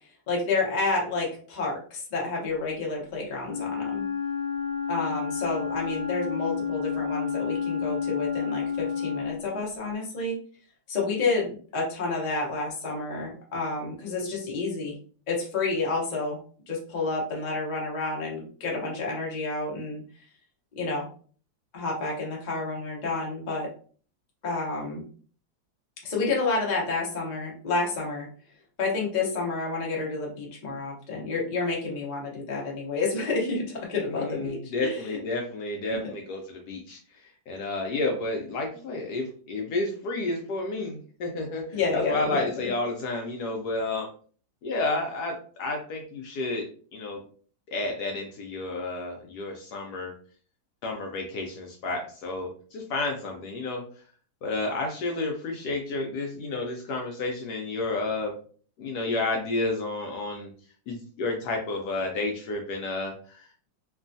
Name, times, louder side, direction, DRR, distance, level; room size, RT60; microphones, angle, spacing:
voice 1, 0.3-4.0 4.9-10.4 10.9-15.0 15.3-16.4 16.7-20.0 20.8-21.1 21.7-23.7 24.4-25.0 26.0-28.3 28.8-35.2 41.7-42.7, left 3 dB, 50° left, -3 dB, 0.5 m, -29 dB
Wind instrument woodwind instrument, 3.4-9.4, left 6 dB, 55° right, 1.2 m, -30 dB
voice 2, 34.0-37.0 37.5-44.1 44.6-46.7 46.9-47.2 47.7-50.1 50.8-53.8 54.4-58.3 58.8-60.5 60.9-63.7, left 2 dB, 70° left, 2 dB, 1.0 m, -31 dB
3.1 x 2.3 x 2.5 m, 0.43 s
omnidirectional pair, 2.1 m